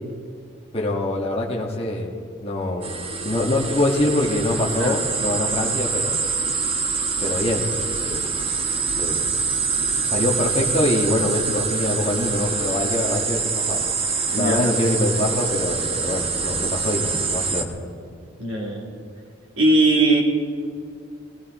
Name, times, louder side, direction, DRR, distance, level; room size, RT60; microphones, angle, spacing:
voice 1, 0.7-2.9 3.2-6.2 7.2-7.7 8.0-8.3 8.9-9.2 10.0-13.8 14.3-17.8, left 1 dB, 30° left, -2 dB, 1.4 m, -24 dB
sound 1, 2.8-17.6, right 5 dB, 30° right, 0.9 m, -25 dB
voice 2, 18.4-18.9 19.6-20.2, right 2 dB, 80° right, -3 dB, 3.4 m, -19 dB
20.5 x 16.5 x 4.2 m, 2.2 s
head